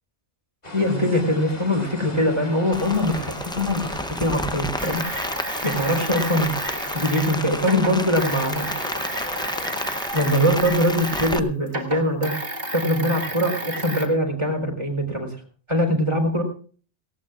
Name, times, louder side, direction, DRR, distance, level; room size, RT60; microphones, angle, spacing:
sound 1, 0.6-10.0, left 2 dB, 35° left, 2.2 m, -38 dB
voice 1, 0.7-6.5 6.9-8.7 10.1-12.3 12.7-15.4 15.7-16.4, equal, 25° right, 2 dB, 4.0 m, -22 dB
Rain, 2.7-11.4, left 1 dB, 5° left, 0.4 m, -31 dB
sound 2, 4.8-11.4 11.7-14.1, right 1 dB, 55° right, 2.5 m, -32 dB
18.5 x 18.0 x 2.4 m, 0.42 s
omnidirectional pair, 1.2 m